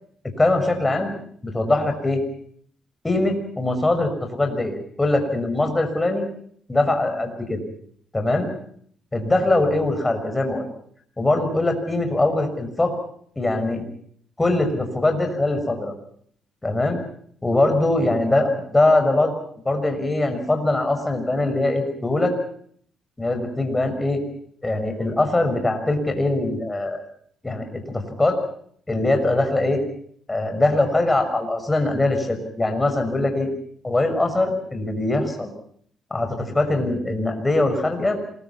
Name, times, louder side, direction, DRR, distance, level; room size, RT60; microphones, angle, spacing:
voice 1, 0.2-1.1 1.4-2.2 3.0-6.2 6.7-7.6 8.1-8.5 9.1-10.7 11.2-12.9 13.4-13.8 14.4-15.9 16.6-17.0 17.4-19.3 19.6-22.3 23.2-24.2 24.6-27.0 27.4-28.4 28.9-29.8 30.3-33.5 33.8-35.5 36.1-38.2, left 2 dB, 15° left, 6 dB, 6.2 m, -22 dB
27.5 x 22.0 x 5.8 m, 0.62 s
cardioid pair, 90°, 0 cm